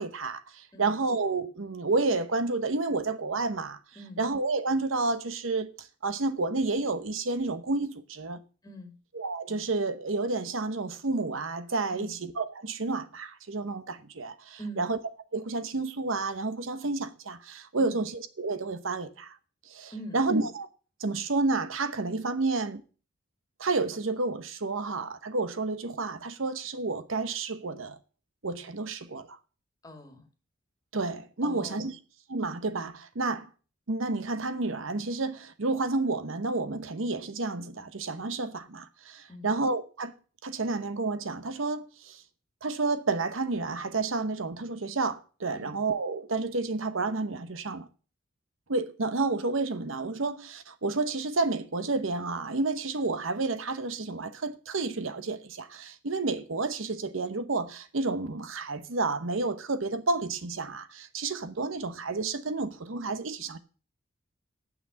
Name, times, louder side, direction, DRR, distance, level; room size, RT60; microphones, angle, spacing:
voice 1, 0.0-3.8 4.2-8.4 9.1-15.0 15.3-19.4 19.7-20.7 21.0-22.8 23.6-28.0 28.4-29.4 30.9-32.0 32.3-33.5 33.9-40.1 40.4-42.2 42.6-47.9 48.7-63.6, right 3 dB, 90° right, 1.0 m, -30 dB
voice 2, 8.6-9.0 11.9-12.1 14.6-14.9 17.8-18.0 19.9-20.4 29.8-30.3 31.4-31.9 39.3-39.5 45.5-45.8, equal, 20° left, 1.8 m, -43 dB
9.3 x 5.9 x 8.2 m
head